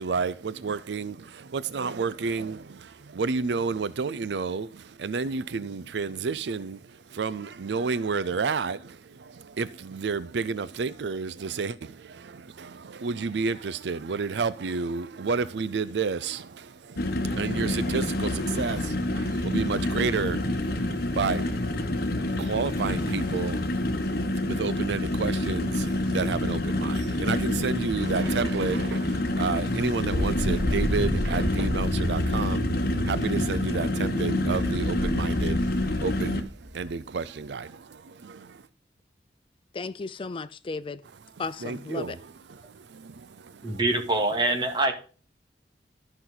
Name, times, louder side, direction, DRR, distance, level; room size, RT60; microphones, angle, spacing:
voice 1, 0.0-38.7 41.3-43.8, right 5 dB, 75° right, 0.5 m, -31 dB
sound 1, 17.0-36.4, left 1 dB, 60° left, 1.2 m, -28 dB
sound 2, 30.0-36.8, equal, 55° right, 2.7 m, -30 dB
voice 2, 39.7-41.0 41.4-42.2, left 3 dB, 30° left, 0.4 m, -34 dB
voice 3, 43.6-44.9, right 2 dB, 25° right, 2.2 m, -24 dB
13.5 x 6.0 x 3.9 m
head